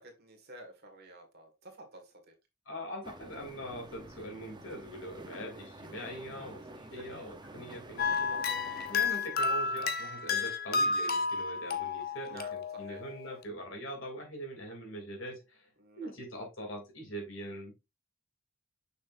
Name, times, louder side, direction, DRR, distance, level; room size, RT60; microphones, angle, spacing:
voice 1, 0.0-2.3 6.9-7.2 12.2-13.0 15.8-16.1, right 1 dB, 50° right, 4 dB, 1.9 m, -51 dB
voice 2, 2.7-15.7 16.0-17.7, right 1 dB, 65° left, 1 dB, 3.0 m, -43 dB
sound 1, 3.0-9.1, right 1 dB, 20° right, 0.8 m, -49 dB
sound 2, 8.0-13.1, left 4 dB, 50° left, 0.9 m, -31 dB
6.5 x 6.1 x 2.6 m, 0.24 s
head